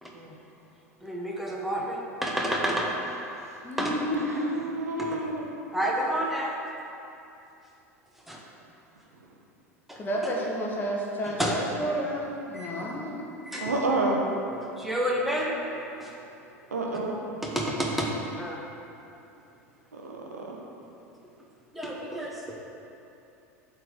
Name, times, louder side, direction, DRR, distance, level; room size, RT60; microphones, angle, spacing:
voice 1, 0.0-0.3 1.0-2.9 3.8-3.9 5.0-5.2 5.7-6.6 8.3-8.4 9.9-10.3 11.4-11.6 12.5-12.8 13.5-13.7 14.6-16.2 17.4-18.1 18.3-18.6 21.7-22.5, equal, ahead, -3 dB, 1.2 m, -30 dB
voice 2, 3.6-4.6 10.0-13.2, equal, 25° left, -2 dB, 1.4 m, -31 dB
voice 3, 4.2-5.5 12.8-12.9 13.6-14.2 16.7-17.1 19.9-20.6, right 2 dB, 75° right, -1 dB, 0.9 m, -29 dB
7.5 x 3.9 x 6.7 m, 2.8 s
figure-of-eight pair, 75°, 8 cm